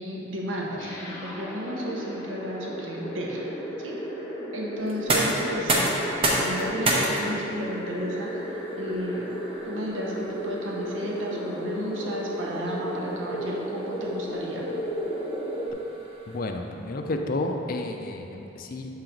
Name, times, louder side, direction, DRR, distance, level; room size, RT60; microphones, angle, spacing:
voice 1, 0.0-3.4 3.8-4.0 4.5-5.9 6.2-8.4 8.8-9.3 9.7-14.6, equal, 75° right, -2 dB, 0.9 m, -33 dB
sound 1, 0.8-15.7, equal, 15° left, 0.9 m, -34 dB
sound 2, 4.8-16.6, right 1 dB, 30° right, 0.8 m, -31 dB
voice 2, 16.3-18.9, left 2 dB, 45° left, 4 dB, 0.4 m, -31 dB
7.4 x 3.9 x 4.5 m, 3.0 s
head